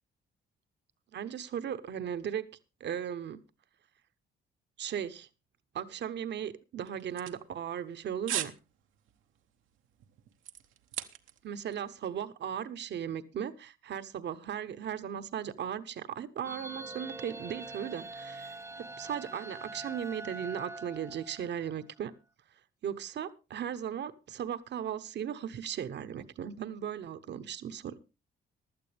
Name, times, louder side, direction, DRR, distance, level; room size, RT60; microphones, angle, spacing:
voice 1, 1.1-2.5 2.8-3.4 4.8-5.3 5.7-8.5 11.4-22.1 22.8-28.0, right 9 dB, 60° right, 11 dB, 1.0 m, -37 dB
sound 1, 6.9-7.9 8.3-8.6 9.0-9.2 9.7-11.5 11.7-11.8, right 11 dB, 85° right, 1.0 m, -37 dB
sound 2, 16.4-21.8, right 2 dB, 15° right, 0.5 m, -44 dB
16.0 x 11.5 x 3.4 m, 0.29 s
cardioid pair, 90°, 20 cm